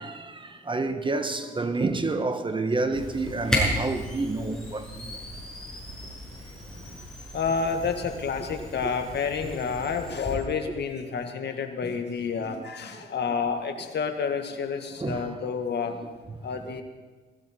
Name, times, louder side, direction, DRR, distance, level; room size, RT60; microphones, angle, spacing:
voice 1, 0.0-5.2 9.7-9.8 11.8-12.0 12.4-12.6 13.0-13.1 15.0-15.3 16.3-16.4, right 3 dB, 25° right, 1.4 m, -29 dB
Camera, 2.9-10.4, equal, 5° left, 7.0 m, -34 dB
voice 2, 7.3-16.0 16.4-16.8, left 5 dB, 55° left, 2.0 m, -29 dB
20.5 x 15.0 x 4.6 m
cardioid pair, 90°, 21 cm